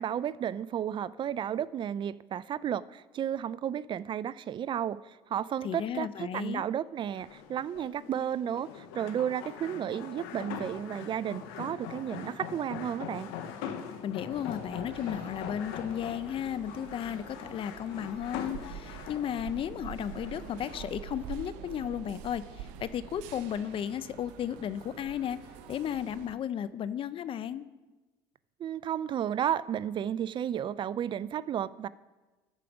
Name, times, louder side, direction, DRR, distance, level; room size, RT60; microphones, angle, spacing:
voice 1, 0.0-13.3 28.6-31.9, right 9 dB, 40° right, 19 dB, 0.3 m, -33 dB
voice 2, 5.6-6.7 14.0-25.4 25.7-27.7, left 9 dB, 45° left, 15 dB, 0.5 m, -34 dB
sound 1, 7.1-20.9, left 8 dB, 85° left, 0.9 m, -42 dB
sound 2, 14.3-26.3, right 9 dB, 80° right, 0.7 m, -46 dB
13.5 x 5.0 x 6.0 m, 1.2 s
supercardioid pair, 80°, 12 cm